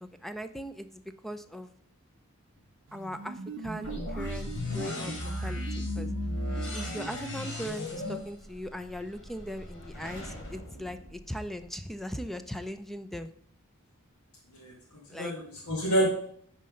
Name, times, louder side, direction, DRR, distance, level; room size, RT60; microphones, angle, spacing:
voice 1, 0.2-1.7 2.9-3.4 3.6-5.6 6.0-6.1 6.7-13.3 15.1-15.3, equal, ahead, 9 dB, 0.4 m, -39 dB
sound 1, 2.9-7.8, right 3 dB, 60° right, 0.6 m, -42 dB
sound 2, 3.8-11.7, left 1 dB, 60° left, 2.2 m, -36 dB
voice 2, 14.5-16.1, right 1 dB, 75° left, -4 dB, 2.1 m, -29 dB
9.3 x 4.3 x 5.2 m, 0.64 s
head